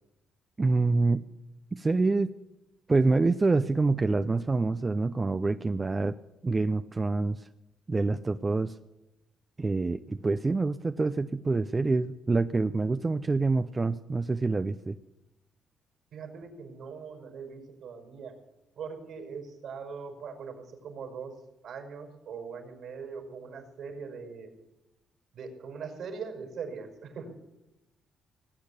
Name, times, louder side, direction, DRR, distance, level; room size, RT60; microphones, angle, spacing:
voice 1, 0.6-1.2 1.7-2.3 2.9-6.1 6.4-7.5 7.9-8.8 9.6-15.0, right 3 dB, 25° right, 11 dB, 0.6 m, -26 dB
voice 2, 16.1-18.4 18.8-21.3 21.6-24.5 25.3-27.4, right 5 dB, 70° right, 5 dB, 5.2 m, -41 dB
19.5 x 8.6 x 8.4 m, 0.94 s
cardioid pair, 90°, 0 cm